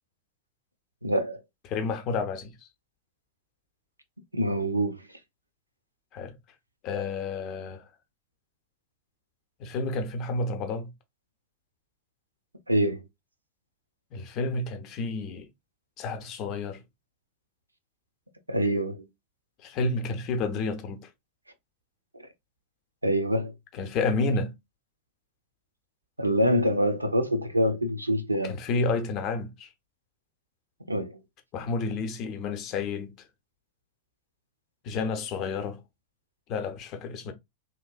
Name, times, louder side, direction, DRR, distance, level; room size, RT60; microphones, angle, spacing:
voice 1, 1.0-1.4 4.3-5.1 12.7-13.0 18.5-19.1 23.0-23.5 26.2-28.5 30.9-31.2, equal, 85° right, 0.4 m, -25 dB
voice 2, 1.6-2.5 6.1-6.4 6.8-7.9 9.6-10.9 14.1-15.5 16.0-16.8 19.6-21.1 23.7-24.6 28.4-29.7 31.5-33.1 34.8-35.8 36.5-37.3, left 3 dB, 40° left, 0.5 m, -30 dB
2.8 x 2.2 x 2.4 m
figure-of-eight pair, 90°, 0 cm